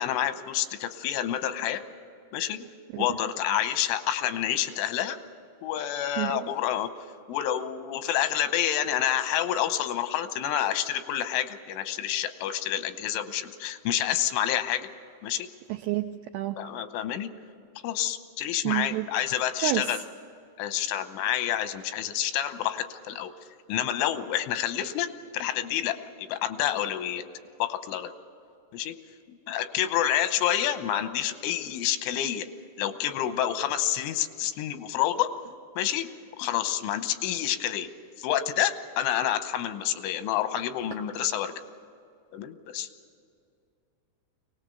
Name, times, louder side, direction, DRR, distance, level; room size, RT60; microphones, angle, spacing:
voice 1, 0.0-1.8 2.3-2.7 3.0-5.2 5.6-6.9 7.3-14.9 15.2-15.5 16.6-17.3 17.8-20.0 20.6-23.3 23.7-27.2 27.6-28.1 28.7-28.9 29.5-32.5 32.8-35.3 35.8-36.1 36.4-37.9 38.2-41.5 42.3-42.9, left 11 dB, 90° left, 10 dB, 3.3 m, -28 dB
voice 2, 6.2-6.5 15.7-16.6 18.6-19.1 19.6-20.0, right 15 dB, 85° right, 7 dB, 2.4 m, -29 dB
23.5 x 18.5 x 6.8 m, 2.4 s
omnidirectional pair, 5.5 m